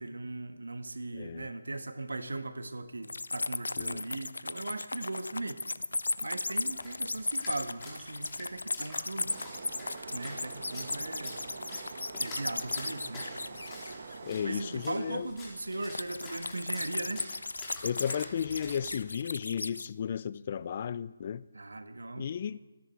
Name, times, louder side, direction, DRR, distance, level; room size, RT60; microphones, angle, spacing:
voice 1, 0.0-5.6 6.2-9.3 10.1-11.4 12.2-13.3 14.4-17.2 21.5-22.3, right 2 dB, 80° right, 1.7 m, -38 dB
voice 2, 1.1-1.5 3.8-4.0 14.2-15.3 17.8-21.4 22.2-22.6, left 8 dB, 40° left, 0.4 m, -34 dB
sound 1, 3.0-14.4 15.9-19.9, left 3 dB, 80° left, 0.6 m, -36 dB
Splash splatter, 6.4-19.1, left 2 dB, 15° left, 3.7 m, -49 dB
sound 2, 9.3-15.2, right 4 dB, 50° right, 1.3 m, -45 dB
27.5 x 10.5 x 4.6 m
figure-of-eight pair, 155°, 0 cm